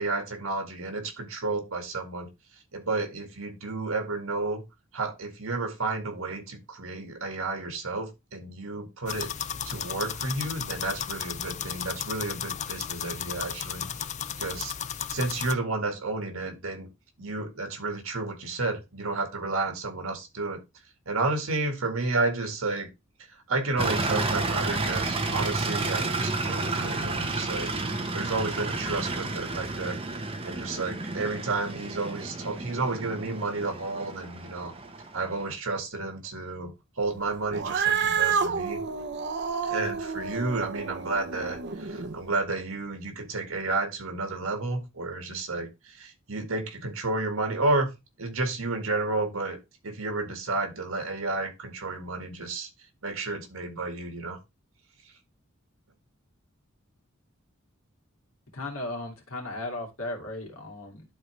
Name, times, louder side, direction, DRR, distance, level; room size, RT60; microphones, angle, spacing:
voice 1, 0.0-2.3 2.7-4.6 4.9-9.3 9.7-13.9 14.4-14.7 15.1-16.9 17.2-20.6 21.1-22.9 23.3-27.7 28.1-30.0 30.4-34.7 35.1-38.8 39.6-47.9 48.2-52.7 53.0-54.4, right 3 dB, 80° right, 1.9 m, -31 dB
sound 1, 9.1-15.5, left 9 dB, 35° left, 0.4 m, -34 dB
sound 2, 23.8-35.5, right 3 dB, 25° right, 1.1 m, -31 dB
Cat, 37.5-42.2, right 6 dB, 55° right, 0.7 m, -29 dB
voice 2, 58.5-61.0, left 2 dB, 80° left, 2.6 m, -36 dB
11.5 x 3.9 x 3.3 m
head